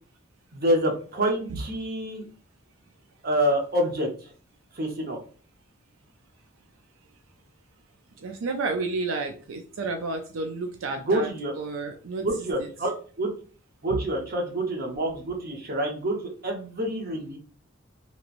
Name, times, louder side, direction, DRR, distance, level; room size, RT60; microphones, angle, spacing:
voice 1, 0.5-2.3 3.2-4.1 4.8-5.2 11.1-11.5 12.2-12.9 13.2-13.3 13.8-17.4, right 1 dB, 50° right, 1 dB, 0.9 m, -27 dB
voice 2, 8.2-12.3 12.6-12.7 13.9-14.0, right 3 dB, 85° right, 4 dB, 0.4 m, -31 dB
3.0 x 2.9 x 2.5 m, 0.40 s
head